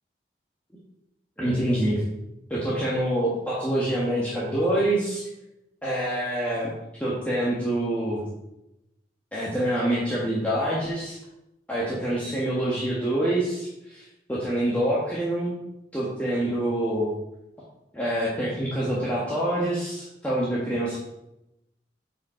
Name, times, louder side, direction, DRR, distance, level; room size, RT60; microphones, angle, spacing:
voice 1, 1.4-2.0 2.5-5.3 5.8-6.7 7.0-8.2 9.3-11.2 11.7-14.0 14.3-15.6 15.9-17.1 17.9-21.0, right 1 dB, 10° left, -7 dB, 1.5 m, -26 dB
8.6 x 5.3 x 4.4 m, 0.89 s
head